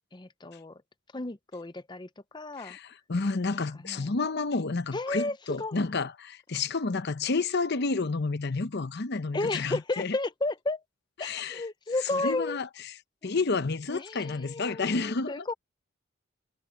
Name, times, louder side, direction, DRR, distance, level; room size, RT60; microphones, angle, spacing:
voice 1, 0.1-0.8 1.1-2.8 3.7-4.1 4.9-5.8 9.3-10.8 11.2-12.6 13.9-15.5, left 2 dB, 20° left, 0.7 m, -33 dB
voice 2, 2.6-10.2 11.2-11.6 12.2-12.7 13.2-15.4, left 3 dB, 55° left, 0.8 m, -30 dB
head